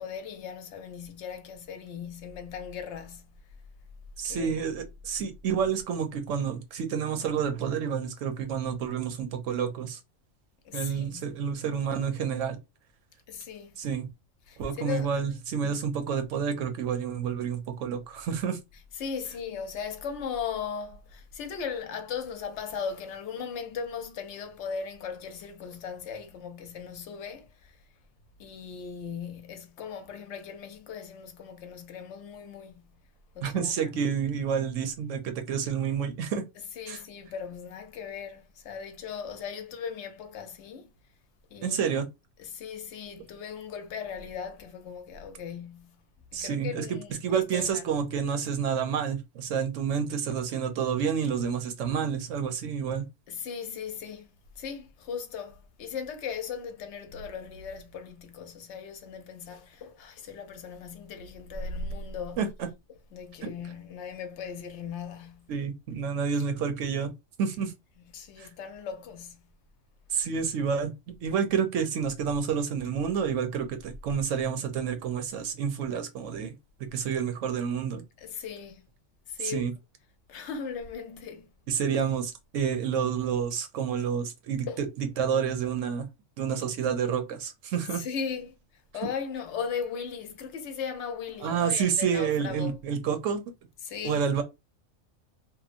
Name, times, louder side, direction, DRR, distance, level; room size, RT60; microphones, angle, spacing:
voice 1, 0.0-3.3 4.2-4.7 10.6-11.4 13.3-13.7 14.5-15.1 19.0-27.7 28.4-32.8 33.3-34.0 36.8-40.9 41.5-41.9 42.4-46.0 46.3-47.8 53.3-54.3 54.6-62.5 63.1-65.5 68.1-69.5 78.2-78.8 79.3-79.7 80.3-81.5 84.7-84.8 87.9-88.6 88.9-92.8 93.8-94.3, left 6 dB, 70° left, 0.9 m, -38 dB
voice 2, 4.2-10.0 10.7-12.6 13.8-14.1 14.6-18.6 33.4-36.4 36.9-37.0 41.6-42.1 46.3-46.8 47.2-53.0 62.4-62.5 63.4-63.5 65.5-67.1 67.4-67.7 68.4-68.5 70.1-70.9 71.2-76.5 76.9-78.0 79.4-79.7 81.7-86.1 86.4-88.0 91.4-93.4 94.0-94.4, right 7 dB, 85° right, 1.0 m, -29 dB
2.9 x 2.2 x 2.5 m
omnidirectional pair, 1.3 m